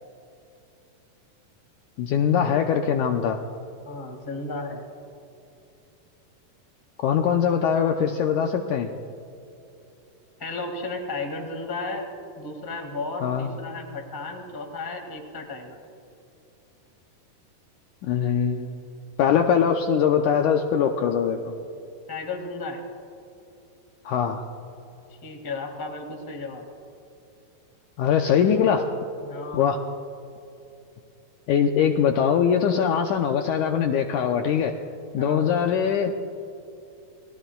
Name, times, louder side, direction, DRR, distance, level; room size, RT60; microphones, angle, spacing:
voice 1, 2.0-3.4 7.0-8.9 13.2-13.5 18.0-18.8 19.2-21.5 24.1-24.4 28.0-28.9 29.5-29.8 31.5-34.7 35.1-36.1, left 7 dB, 80° left, 4 dB, 1.8 m, -22 dB
voice 2, 3.8-4.8 10.4-12.1 12.4-15.8 22.1-22.8 25.1-26.7 29.2-29.8 35.2-35.5, left 3 dB, 15° left, 2 dB, 0.8 m, -34 dB
29.5 x 20.5 x 2.3 m, 2.8 s
omnidirectional pair, 4.2 m